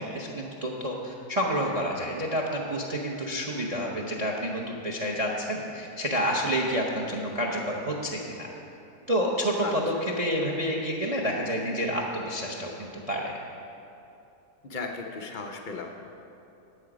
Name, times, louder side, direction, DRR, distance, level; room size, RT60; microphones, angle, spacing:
voice 1, 0.0-8.5 9.1-13.3, equal, 35° right, -1 dB, 0.6 m, -29 dB
voice 2, 14.6-16.0, left 3 dB, 70° left, 3 dB, 0.4 m, -36 dB
11.0 x 7.9 x 4.9 m, 2.8 s
omnidirectional pair, 1.7 m